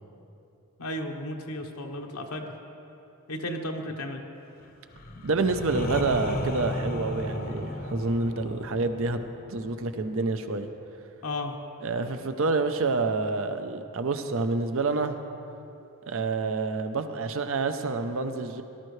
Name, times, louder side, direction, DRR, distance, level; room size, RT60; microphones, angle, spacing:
voice 1, 0.8-2.5 3.3-4.2 11.2-11.6, left 1 dB, 75° left, 2 dB, 1.0 m, -34 dB
sound 1, 4.9-10.6, left 1 dB, 40° left, 0.8 m, -35 dB
voice 2, 5.2-9.2 9.5-10.7 11.8-15.2 16.0-18.6, right 3 dB, 60° right, 8 dB, 0.7 m, -28 dB
18.0 x 12.5 x 3.2 m, 2.8 s
head